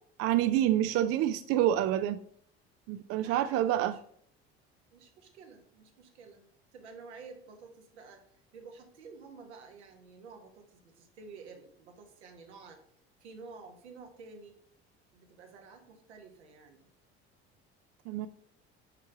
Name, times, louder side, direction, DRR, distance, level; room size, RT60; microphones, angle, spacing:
voice 1, 0.2-2.2 2.9-4.0 18.1-18.3, right 12 dB, 45° right, 12 dB, 0.4 m, -27 dB
voice 2, 3.1-4.0 4.9-6.5 6.7-12.8 13.2-14.6 15.1-16.9, right 4 dB, 80° right, 4 dB, 1.2 m, -51 dB
5.7 x 4.6 x 4.8 m, 0.64 s
hypercardioid pair, 60°, 33 cm